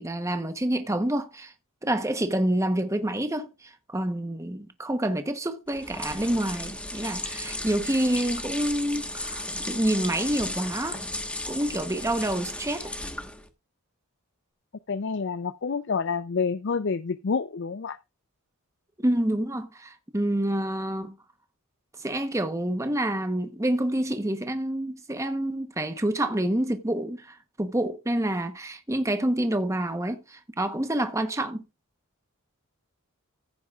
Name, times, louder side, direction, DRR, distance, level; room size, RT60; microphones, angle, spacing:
voice 1, 0.0-1.5 1.8-11.0 11.4-12.9 19.0-21.2 22.0-31.6, right 1 dB, 15° right, 0.9 m, -28 dB
sound 1, 5.7-13.5, left 1 dB, 5° left, 1.3 m, -35 dB
voice 2, 14.9-18.0, left 5 dB, 55° left, 0.5 m, -28 dB
15.0 x 9.3 x 2.4 m
head